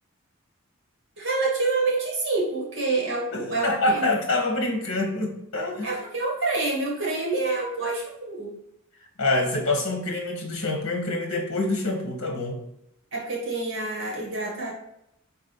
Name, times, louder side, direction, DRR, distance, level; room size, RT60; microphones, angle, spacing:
voice 1, 1.2-4.1 5.8-8.5 13.1-14.7, right 3 dB, 60° right, -2 dB, 1.9 m, -27 dB
voice 2, 3.3-5.9 9.2-12.6, left 2 dB, 60° left, 2 dB, 1.3 m, -26 dB
5.3 x 4.7 x 5.4 m, 0.79 s
head